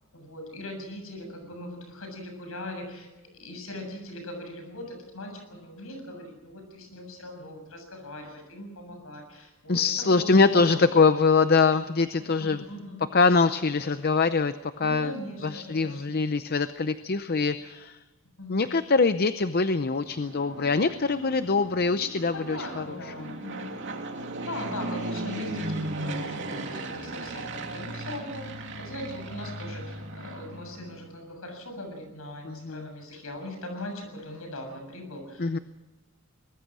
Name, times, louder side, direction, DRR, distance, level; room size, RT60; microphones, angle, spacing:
voice 1, 0.1-3.1 3.4-10.8 12.4-13.0 14.8-16.2 18.4-18.6 22.3-23.7 24.4-26.3 26.7-35.6, left 1 dB, 70° left, 5 dB, 7.2 m, -40 dB
voice 2, 9.7-12.6 13.1-15.1 15.4-18.0 18.5-23.4 32.4-32.9 35.4-35.6, left 4 dB, 45° left, 11 dB, 0.6 m, -24 dB
Fixed-wing aircraft airplane, 20.0-31.1, right 2 dB, 55° right, 2.8 m, -37 dB
22.5 x 20.5 x 6.2 m, 1.2 s
head